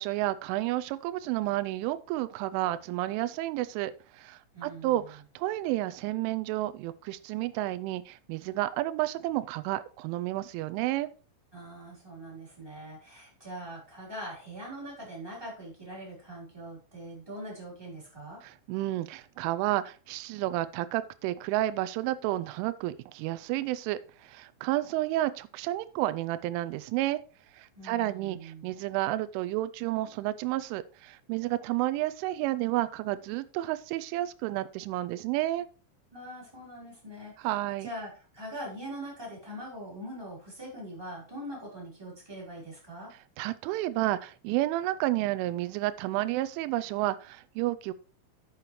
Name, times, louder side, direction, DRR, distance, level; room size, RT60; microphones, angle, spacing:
voice 1, 0.0-11.1 18.4-27.2 27.6-35.7 37.4-37.9 43.4-47.9, right 16 dB, 85° right, 15 dB, 3.0 m, -31 dB
voice 2, 4.5-5.2 11.5-18.4 27.7-28.7 36.1-37.5 37.8-43.1, right 1 dB, 5° right, -4 dB, 3.3 m, -42 dB
10.5 x 6.9 x 3.1 m, 0.36 s
omnidirectional pair, 5.7 m